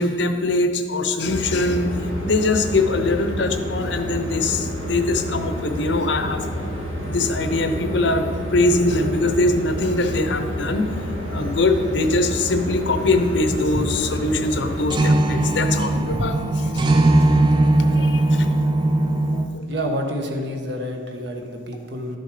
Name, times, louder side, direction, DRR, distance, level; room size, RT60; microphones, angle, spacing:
voice 1, 0.0-1.9 2.2-6.5 6.8-10.9 11.3-16.8 17.8-18.5 18.8-18.9 19.3-19.6, left 2 dB, 60° left, 7 dB, 0.8 m, -22 dB
sound 1, 1.2-14.8, equal, 85° right, 2.7 m, -29 dB
sound 2, 13.6-14.0 14.4-14.5 14.9-19.4, right 2 dB, 25° right, 0.6 m, -19 dB
voice 2, 19.7-22.2, equal, 60° right, 3 dB, 1.2 m, -28 dB
12.0 x 6.6 x 4.9 m, 2.2 s
head